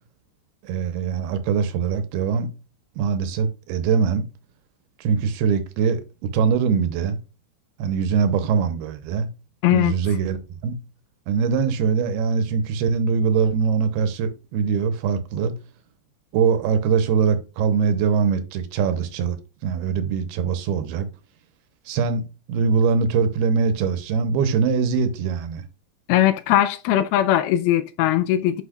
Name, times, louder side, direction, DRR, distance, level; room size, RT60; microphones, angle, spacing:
voice 1, 0.6-2.5 3.0-4.2 5.0-6.0 6.3-7.2 7.8-9.3 9.7-10.4 10.6-10.8 11.3-15.5 16.3-21.1 21.9-25.6, right 6 dB, 80° right, 2.7 m, -22 dB
voice 2, 9.6-9.9 26.1-28.6, left 12 dB, 80° left, 2.3 m, -19 dB
9.9 x 5.5 x 2.3 m
omnidirectional pair, 4.7 m